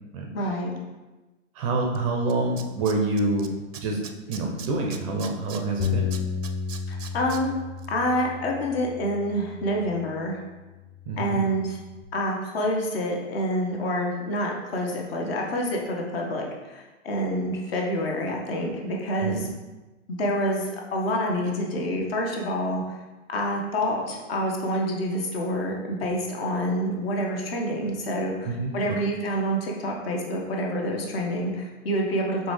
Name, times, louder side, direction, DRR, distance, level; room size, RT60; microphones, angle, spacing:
voice 1, 0.3-0.8 6.9-7.5 7.9-10.4 11.2-11.8 12.1-19.5 20.1-22.9 23.3-32.5, equal, 50° left, 0 dB, 1.0 m, -27 dB
voice 2, 1.6-3.5 3.8-4.0 4.3-6.1 11.1-11.4 19.2-19.5 28.4-28.7, right 2 dB, 25° right, 0 dB, 0.5 m, -26 dB
Tools, 1.9-2.0 2.3-3.5 3.7-7.4 7.8-7.9, right 8 dB, 75° right, 0.6 m, -40 dB
Bass guitar, 5.8-10.3 10.9-12.0, left 7 dB, 30° left, 0.5 m, -33 dB
5.0 x 3.2 x 3.2 m, 1.2 s
figure-of-eight pair, 110°, 38 cm